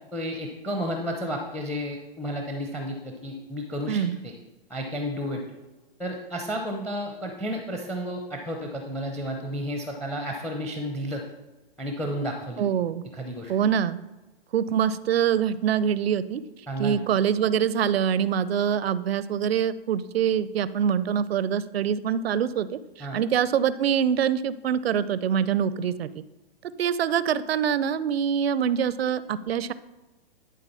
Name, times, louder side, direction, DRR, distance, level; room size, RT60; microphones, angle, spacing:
voice 1, 0.1-4.3 4.7-5.4 6.0-11.2 11.8-12.6 13.1-13.5 16.7-17.0 23.0-23.2, equal, 5° left, 3 dB, 0.6 m, -32 dB
voice 2, 12.6-13.0 13.5-14.0 14.5-16.4 16.8-26.2 26.8-29.7, right 8 dB, 80° right, 16 dB, 0.5 m, -24 dB
11.0 x 3.8 x 5.5 m, 1.1 s
hypercardioid pair, 125°, 30 cm